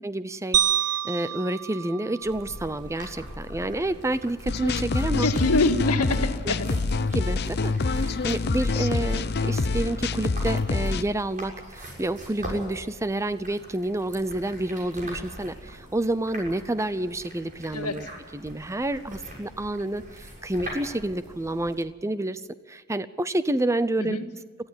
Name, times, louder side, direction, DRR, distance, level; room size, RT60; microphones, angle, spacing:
voice 1, 0.0-5.3 6.4-6.8 7.1-18.1 18.3-22.4 22.7-24.2, right 1 dB, 15° right, 14 dB, 0.6 m, -29 dB
sound 1, 0.5-2.9, right 11 dB, 90° right, 1.1 m, -27 dB
sound 2, 2.2-21.7, equal, 35° right, 6.8 m, -42 dB
sound 3, 4.5-11.0, left 3 dB, 45° left, 0.7 m, -26 dB
voice 2, 5.2-6.7 17.7-18.0 24.0-24.3, left 2 dB, 90° left, 5 dB, 2.0 m, -25 dB
22.0 x 15.0 x 9.4 m, 1.4 s
head